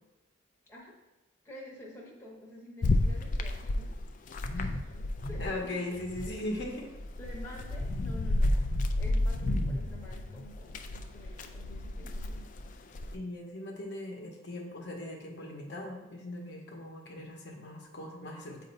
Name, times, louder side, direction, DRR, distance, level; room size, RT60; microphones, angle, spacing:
voice 1, 1.4-3.9 4.5-5.8 7.2-12.4, left 1 dB, 10° left, -4 dB, 0.9 m, -49 dB
sound 1, 2.8-5.6 5.9-13.1, left 1 dB, 40° left, 0.3 m, -31 dB
voice 2, 5.4-6.9 13.1-18.7, left 1 dB, 55° left, 0 dB, 0.9 m, -39 dB
7.6 x 2.6 x 5.2 m, 1.0 s
head